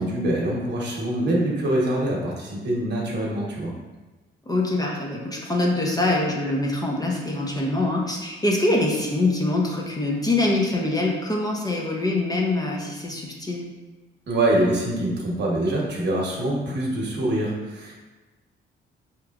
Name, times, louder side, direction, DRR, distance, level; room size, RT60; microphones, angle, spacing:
voice 1, 0.0-3.7 14.3-17.9, right 1 dB, 60° right, -3 dB, 1.1 m, -24 dB
voice 2, 4.5-13.6, left 2 dB, 20° left, -2 dB, 0.7 m, -24 dB
4.8 x 3.0 x 2.4 m, 1.2 s
cardioid pair, 90°, 20 cm